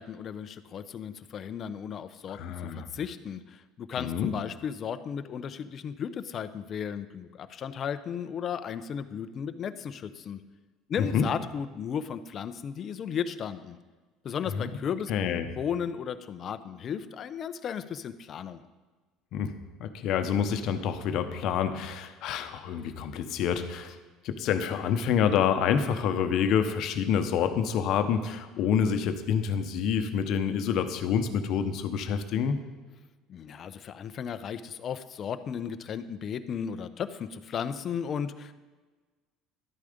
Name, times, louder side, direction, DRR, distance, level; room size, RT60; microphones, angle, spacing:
voice 1, 0.0-2.4 2.7-10.4 10.9-13.8 14.2-18.6 33.3-38.5, left 7 dB, 45° left, 11 dB, 0.7 m, -35 dB
voice 2, 2.3-2.9 4.0-4.3 11.0-11.3 14.5-14.7 15.1-15.5 19.3-19.5 19.8-24.0 24.2-32.6, left 7 dB, 65° left, 8 dB, 1.0 m, -27 dB
12.0 x 8.4 x 5.2 m, 1.3 s
supercardioid pair, 100°, 0 cm